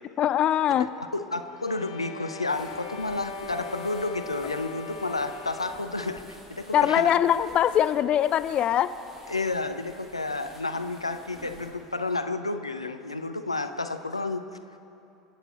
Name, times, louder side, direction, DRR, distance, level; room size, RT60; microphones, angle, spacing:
voice 1, 0.2-0.9 6.7-8.9, left 10 dB, 35° left, 13 dB, 0.5 m, -22 dB
voice 2, 0.7-7.1 9.3-14.4, left 3 dB, 90° left, 8 dB, 0.7 m, -31 dB
sound 1, 1.3-6.1, left 3 dB, 70° left, 1.0 m, -40 dB
sound 2, 2.4-12.2, equal, 15° right, 2.7 m, -50 dB
27.0 x 9.1 x 4.4 m, 2.7 s
figure-of-eight pair, 80°, 3 cm